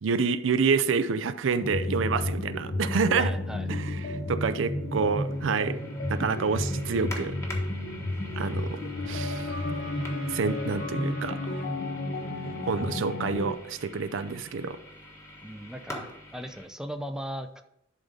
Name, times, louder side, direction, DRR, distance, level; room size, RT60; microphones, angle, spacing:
voice 1, 0.0-3.3 3.7-5.8 6.1-7.4 8.4-8.8 9.1-9.6 10.3-11.4 12.6-14.8, right 5 dB, 75° right, 12 dB, 0.5 m, -28 dB
sound 1, 1.5-16.7, left 1 dB, 15° left, 1.3 m, -45 dB
sound 2, 1.6-13.5, left 1 dB, 50° left, 0.9 m, -32 dB
voice 2, 3.2-3.7 15.4-16.1 16.3-17.6, equal, 5° right, 7 dB, 0.5 m, -37 dB
Trumpet, 7.4-11.7, right 1 dB, 80° left, 2.6 m, -49 dB
11.5 x 3.8 x 5.2 m, 0.79 s
head